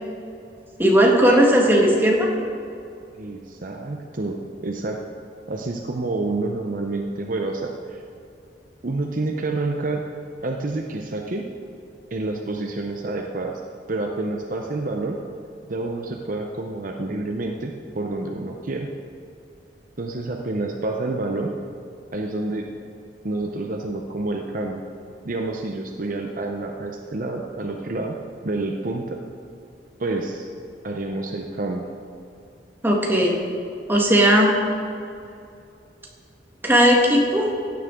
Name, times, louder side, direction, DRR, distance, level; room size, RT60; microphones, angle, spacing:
voice 1, 0.8-2.3 32.8-33.3 33.9-34.5 36.6-37.5, equal, 10° right, -1 dB, 1.6 m, -17 dB
voice 2, 3.1-5.0 5.5-8.0 8.8-10.0 10.4-11.5 12.1-13.6 13.9-15.2 15.7-18.9 20.0-21.5 22.1-22.7 23.2-24.8 25.2-29.2 30.0-30.5 30.8-31.8, right 2 dB, 50° right, 2 dB, 0.8 m, -28 dB
16.0 x 9.5 x 3.7 m, 2.5 s
head